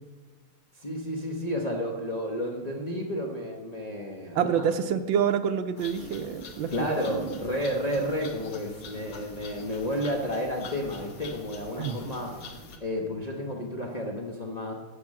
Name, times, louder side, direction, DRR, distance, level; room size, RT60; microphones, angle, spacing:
voice 1, 0.8-4.7 6.7-12.3 12.8-14.7, equal, 70° left, -1 dB, 0.4 m, -31 dB
voice 2, 4.3-7.3 11.8-12.0, right 8 dB, 75° right, 10 dB, 1.3 m, -27 dB
sound 1, 5.8-12.8, left 2 dB, 50° left, 1.3 m, -44 dB
11.5 x 6.1 x 7.3 m, 1.3 s
omnidirectional pair, 2.4 m